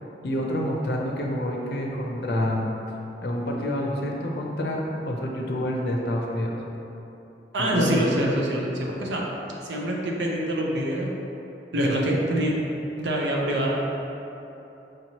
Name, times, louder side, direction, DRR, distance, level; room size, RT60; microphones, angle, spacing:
voice 1, 0.2-2.6 3.2-6.5 7.6-8.0, left 1 dB, 65° left, 0 dB, 0.5 m, -27 dB
voice 2, 7.5-9.3 9.6-11.1 11.7-12.5 13.0-14.0, right 1 dB, 90° right, -2 dB, 0.6 m, -25 dB
5.0 x 2.9 x 2.8 m, 3.0 s
head